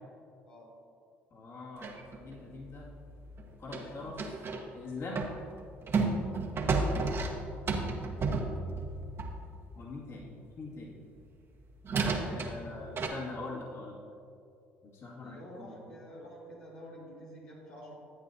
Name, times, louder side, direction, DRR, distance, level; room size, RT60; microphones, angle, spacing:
voice 1, 1.3-2.9 3.6-4.2 4.7-5.2 9.8-11.0 12.2-14.0 14.8-15.9, left 3 dB, 55° left, -5 dB, 2.3 m, -43 dB
sound 1, 1.8-4.7 5.1-9.5 11.2-11.3 11.8-13.1, right 3 dB, 45° right, 1.1 m, -33 dB
voice 2, 15.2-18.0, equal, 85° left, -6 dB, 2.0 m, -48 dB
11.0 x 9.1 x 2.8 m, 2.6 s
hypercardioid pair, 65°, 6 cm